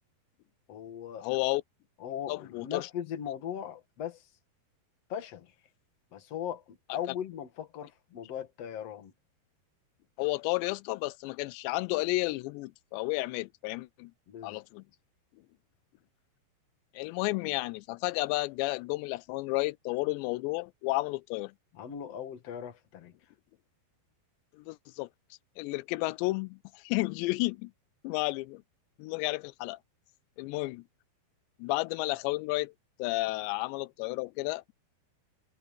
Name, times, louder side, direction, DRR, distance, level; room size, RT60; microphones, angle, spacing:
voice 1, 0.7-1.3 2.0-4.3 5.1-5.5 6.1-9.1 14.3-14.6 21.7-23.1, left 9 dB, 45° left, 2.6 m, -39 dB
voice 2, 1.2-1.6 2.3-2.9 10.2-14.1 14.4-14.8 16.9-21.5 24.5-25.1 25.6-27.7 28.0-28.6 29.0-29.8 30.4-30.8 31.6-32.7 33.0-34.7, left 22 dB, 90° left, 2.8 m, -32 dB
omnidirectional pair, 4.9 m